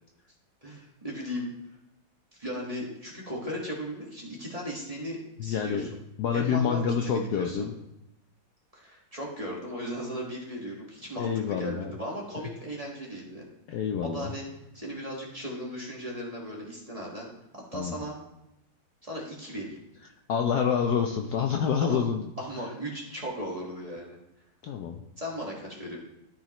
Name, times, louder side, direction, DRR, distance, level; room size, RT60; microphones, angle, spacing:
voice 1, 0.6-1.5 2.4-5.9 6.3-7.7 8.7-13.4 14.0-14.4 14.7-17.3 17.5-18.2 19.0-19.8 21.8-22.0 22.4-24.2 25.2-26.0, equal, 20° right, -3 dB, 1.5 m, -37 dB
voice 2, 5.4-5.9 6.2-7.7 11.2-11.9 13.7-14.3 17.7-18.0 20.3-22.3 24.6-25.0, left 7 dB, 70° left, 3 dB, 1.0 m, -27 dB
13.0 x 5.1 x 3.0 m, 0.86 s
omnidirectional pair, 2.1 m